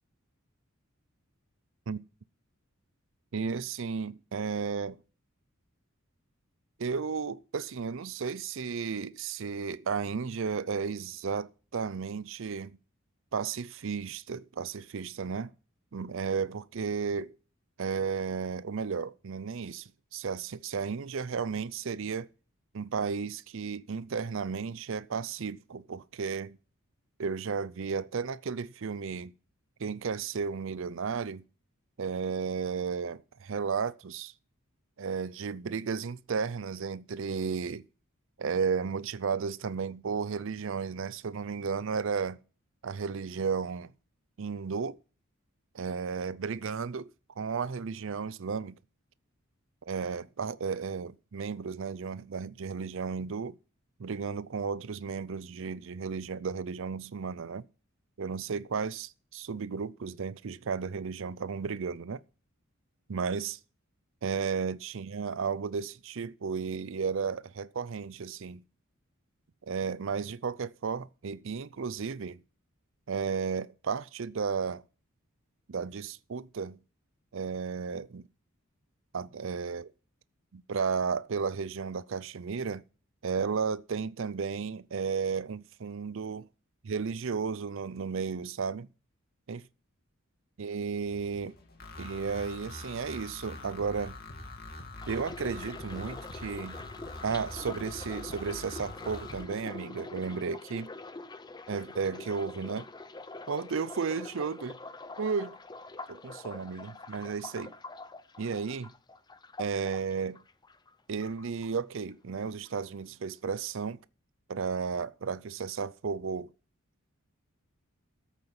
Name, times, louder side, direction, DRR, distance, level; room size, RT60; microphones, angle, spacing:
voice 1, 3.3-5.0 6.8-12.8 13.3-15.5 15.9-17.3 17.8-22.3 22.7-26.6 27.2-29.3 29.8-31.4 32.0-34.3 35.0-37.8 38.4-42.4 42.8-43.9 44.4-45.0 45.7-47.1 47.4-48.8 49.8-53.6 54.0-57.6 58.2-62.2 63.1-63.6 64.2-68.6 69.6-72.4 73.1-74.8 75.7-76.8 77.3-78.3 79.1-79.9 80.5-82.8 83.2-86.5 86.9-88.9 89.5-89.6 90.6-91.6 92.0-94.2 95.1-96.8 97.2-100.9 101.7-102.9 103.5-104.8 105.2-105.6 106.1-107.8 108.4-108.9 109.6-110.4 111.1-114.0 114.5-116.5, right 5 dB, 60° right, 0.5 m, -33 dB
sound 1, 91.1-99.4, left 2 dB, 45° left, 2.5 m, -44 dB
sound 2, 95.0-110.9 111.2-112.1 112.4-112.7, left 3 dB, 20° left, 0.6 m, -45 dB
13.5 x 8.2 x 5.9 m
head